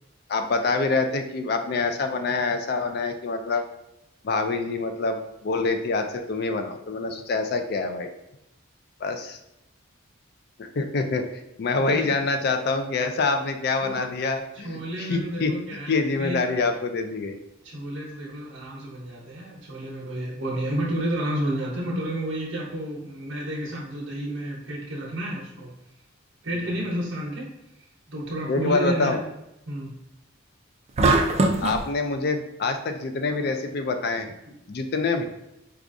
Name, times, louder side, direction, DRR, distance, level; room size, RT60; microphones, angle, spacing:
voice 1, 0.3-3.6 4.2-8.1 9.0-9.4 10.6-15.5 15.9-17.4 26.5-26.7 28.5-29.2 31.6-34.3 34.7-35.3, left 3 dB, 50° left, 6 dB, 0.3 m, -26 dB
voice 2, 11.8-12.1 13.8-14.1 14.6-16.5 17.6-25.7 26.4-27.5 28.1-29.2 29.7-29.9, right 1 dB, 65° right, -4 dB, 0.8 m, -31 dB
sound 1, 31.0-31.8, right 2 dB, 30° right, 0.3 m, -20 dB
4.6 x 2.3 x 2.5 m, 0.87 s
head